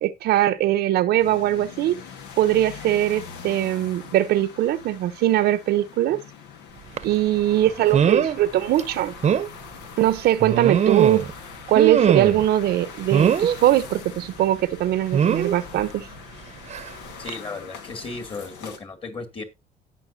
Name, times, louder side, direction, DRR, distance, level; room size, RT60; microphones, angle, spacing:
voice 1, 0.0-2.0 2.4-6.2 7.0-9.1 10.0-11.3 11.7-16.1, right 13 dB, 75° right, 0.9 m, -21 dB
sound 1, 1.2-18.8, left 6 dB, 90° left, 1.7 m, -42 dB
sound 2, 7.0-7.1 7.9-8.4 8.8-8.9 9.2-9.5 10.4-11.3 11.7-12.5 13.1-13.6 15.1-15.5 16.7-16.9 17.3-17.4, right 8 dB, 40° right, 0.8 m, -21 dB
voice 2, 17.2-19.4, left 3 dB, 30° left, 2.4 m, -35 dB
17.5 x 5.8 x 2.7 m
cardioid pair, 110°, 17 cm